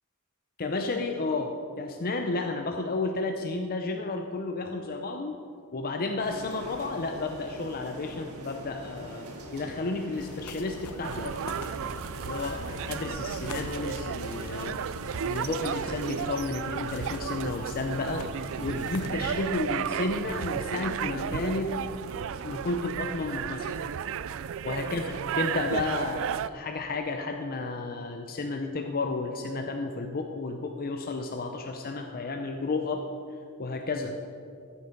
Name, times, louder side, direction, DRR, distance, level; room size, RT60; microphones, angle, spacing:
voice 1, 0.6-5.4 5.7-9.3 9.5-11.6 12.2-12.6 12.9-14.8 15.2-18.3 18.6-21.8 22.0-23.8 24.6-33.1 33.6-34.2, left 3 dB, 45° left, 4 dB, 0.6 m, -32 dB
sound 1, 6.2-25.9, equal, 85° right, 1.8 m, -46 dB
sound 2, 10.1-19.5, left 3 dB, 80° left, 0.7 m, -44 dB
sound 3, 11.0-26.5, right 8 dB, 65° right, 0.4 m, -34 dB
14.0 x 8.6 x 5.3 m, 2.5 s
head